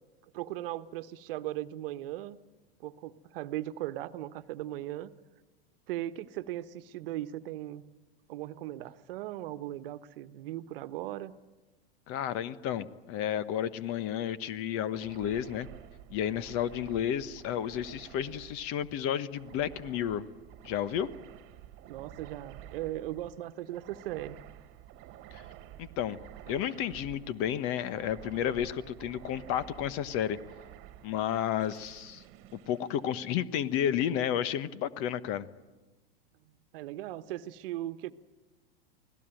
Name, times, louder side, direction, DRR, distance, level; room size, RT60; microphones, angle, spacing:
voice 1, 0.3-2.4 2.8-5.1 5.9-7.8 8.3-11.3 21.8-24.4 36.7-38.1, right 14 dB, 65° right, 11 dB, 1.2 m, -38 dB
voice 2, 12.1-15.7 16.1-20.3 20.6-21.1 25.3-25.4 25.8-26.2 26.5-30.4 31.0-32.2 32.5-35.5, left 10 dB, 45° left, 15 dB, 1.3 m, -32 dB
sound 1, 14.9-33.7, right 12 dB, 40° right, 1.6 m, -51 dB
25.0 x 17.5 x 9.1 m, 1.2 s
hypercardioid pair, 110°, 31 cm